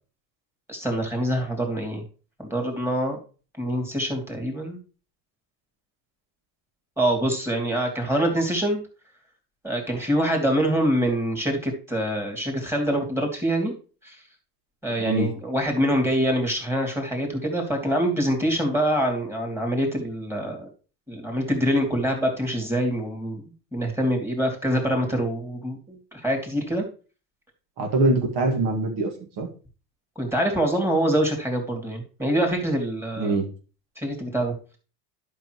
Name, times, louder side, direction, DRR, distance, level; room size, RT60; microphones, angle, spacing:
voice 1, 0.7-2.0 2.4-3.2 3.6-4.8 7.0-8.8 9.6-13.7 14.0-14.2 14.8-20.7 21.1-23.4 23.7-26.8 30.2-33.4 34.0-34.8, right 1 dB, 5° right, 1 dB, 3.1 m, -25 dB
voice 2, 15.0-15.3 27.8-29.5 33.2-33.5, right 2 dB, 50° right, 3 dB, 2.3 m, -23 dB
11.5 x 5.8 x 3.2 m, 0.36 s
hypercardioid pair, 70°, 49 cm